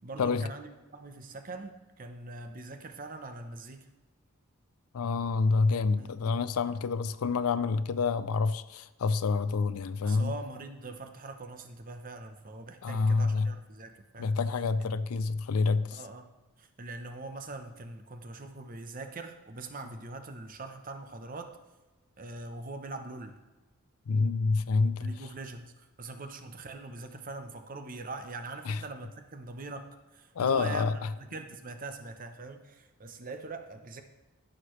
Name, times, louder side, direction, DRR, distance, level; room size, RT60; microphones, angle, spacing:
voice 1, 0.0-3.9 6.0-6.2 10.0-14.4 15.9-16.3 16.6-21.6 22.2-23.4 25.0-34.0, right 3 dB, 40° right, 0.8 m, -42 dB
voice 2, 4.9-10.3 12.8-13.5 14.2-16.0 24.1-25.1 28.7-28.8 30.3-30.9, left 4 dB, 75° left, 0.4 m, -27 dB
14.5 x 6.5 x 3.1 m
head